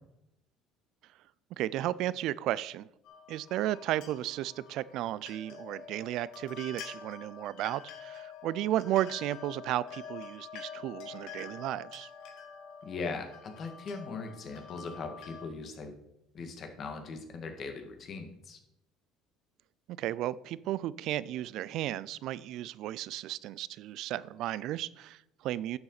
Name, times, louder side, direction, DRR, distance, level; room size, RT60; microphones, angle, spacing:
voice 1, 1.6-2.9 3.3-12.1 19.9-25.8, right 13 dB, 65° right, 19 dB, 0.4 m, -34 dB
sound 1, 3.0-15.5, left 6 dB, 75° left, 1.7 m, -47 dB
voice 2, 12.8-15.9 16.3-18.6, left 4 dB, 45° left, 5 dB, 1.9 m, -40 dB
11.0 x 7.0 x 4.0 m, 0.82 s
supercardioid pair, 90°, 0 cm